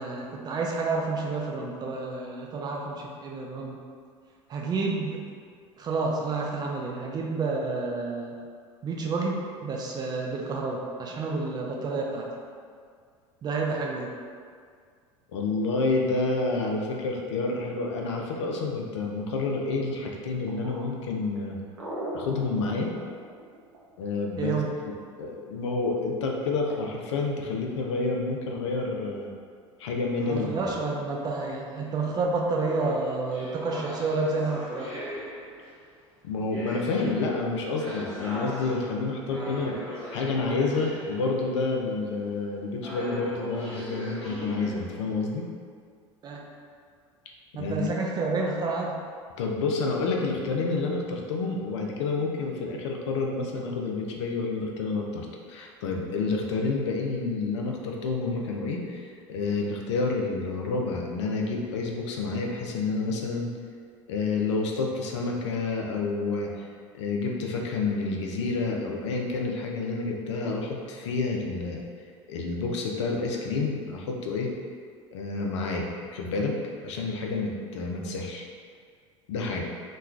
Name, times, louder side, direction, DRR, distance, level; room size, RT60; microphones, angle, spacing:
voice 1, 0.0-3.8 4.5-5.2 5.8-8.4 8.8-12.3 13.4-14.1 24.4-24.7 30.3-34.9 46.2-46.4 47.5-49.0, right 3 dB, 25° right, -1 dB, 0.4 m, -29 dB
voice 2, 15.3-21.6 22.1-22.9 24.0-24.5 25.2-29.3 29.8-30.7 36.2-45.5 47.6-47.9 49.4-63.5 64.1-66.7 66.9-71.8 72.3-74.5 75.1-76.6 76.8-78.4 79.3-79.7, left 3 dB, 65° left, 0 dB, 0.4 m, -29 dB
sound 1, 20.5-24.2 26.2-26.8, right 1 dB, 70° right, 0.6 m, -38 dB
sound 2, 30.2-31.2 32.5-35.9 36.5-41.5 42.8-45.2, equal, 5° left, 1.1 m, -40 dB
3.0 x 2.2 x 2.3 m, 2.1 s
figure-of-eight pair, 70°, 16 cm